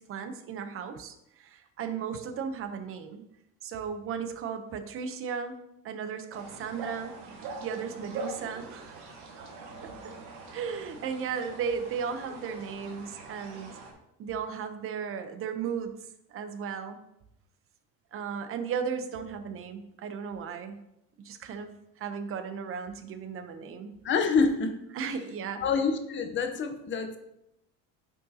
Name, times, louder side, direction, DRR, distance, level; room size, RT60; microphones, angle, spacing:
voice 1, 0.0-3.3 3.6-5.6 5.8-7.1 7.6-8.9 9.8-9.9 10.5-13.8 14.2-16.0 16.3-17.0 18.1-20.8 21.2-21.7 22.0-23.9 24.9-25.6, right 6 dB, 40° right, 9 dB, 0.7 m, -35 dB
sound 1, 6.3-13.9, right 3 dB, 90° right, 1.7 m, -43 dB
voice 2, 24.0-24.8 25.6-27.2, left 5 dB, 35° left, 6 dB, 0.8 m, -26 dB
9.5 x 5.5 x 2.8 m, 0.84 s
cardioid pair, 150°, 34 cm